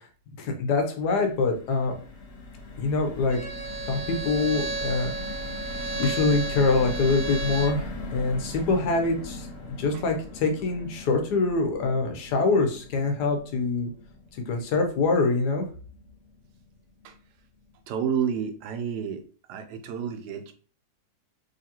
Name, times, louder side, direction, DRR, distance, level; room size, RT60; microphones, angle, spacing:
voice 1, 0.4-1.9 2.8-3.4 3.9-5.1 5.7-9.5 9.8-13.9 14.5-15.6, left 3 dB, 80° left, 4 dB, 1.4 m, -25 dB
sound 1, 1.0-17.3 17.7-17.8 18.1-18.3, left 2 dB, 50° left, 0.8 m, -40 dB
Bowed string instrument, 3.3-7.8, right 3 dB, 65° right, 1.2 m, -33 dB
voice 2, 17.9-19.2 19.5-20.5, right 7 dB, 90° right, 8 dB, 1.2 m, -30 dB
3.9 x 3.2 x 2.8 m, 0.40 s
omnidirectional pair, 1.7 m